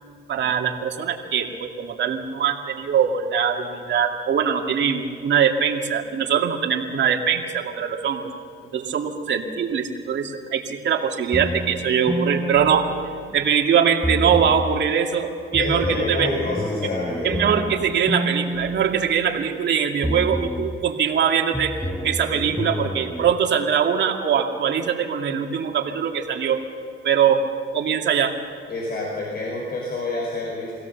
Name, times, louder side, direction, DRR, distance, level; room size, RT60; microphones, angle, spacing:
voice 1, 0.3-8.3 8.7-12.9 13.3-16.3 17.2-21.8 22.0-26.6 27.0-27.4 27.7-28.4, right 7 dB, 65° right, 3 dB, 2.2 m, -22 dB
sound 1, 11.3-13.6 14.0-14.9 15.5-19.7 20.0-20.9 21.5-23.3, equal, 5° left, 0.8 m, -29 dB
voice 2, 15.6-17.5 28.7-30.7, left 2 dB, 50° left, -2 dB, 5.1 m, -27 dB
24.0 x 16.5 x 7.0 m, 2.4 s
cardioid pair, 90°, 20 cm